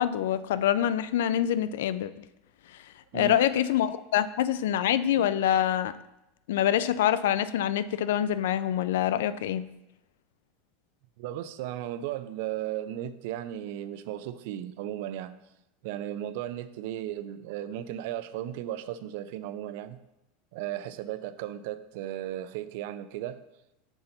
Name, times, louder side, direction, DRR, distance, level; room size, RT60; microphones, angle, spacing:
voice 1, 0.0-2.2 2.7-5.9 6.5-9.6, left 11 dB, 85° left, 15 dB, 0.3 m, -26 dB
voice 2, 3.1-3.4 9.3-9.4 11.2-15.4 15.8-20.0 20.5-23.4, right 12 dB, 65° right, 13 dB, 0.4 m, -35 dB
6.1 x 3.8 x 5.6 m, 0.90 s
supercardioid pair, 145°, 0 cm